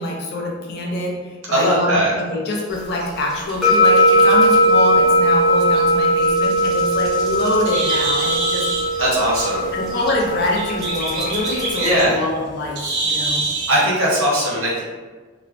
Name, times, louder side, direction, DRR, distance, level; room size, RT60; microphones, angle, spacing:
voice 1, 0.0-8.6 9.7-13.4, left 2 dB, 50° left, -2 dB, 0.5 m, -25 dB
voice 2, 1.5-2.1 9.0-9.7 11.8-12.2 13.7-14.8, right 1 dB, 75° right, -5 dB, 1.0 m, -19 dB
sound 1, 2.7-12.1, equal, ahead, 0.6 m, -19 dB
Bird, 6.6-13.9, right 3 dB, 55° right, 0.5 m, -26 dB
2.9 x 2.1 x 2.5 m, 1.4 s
head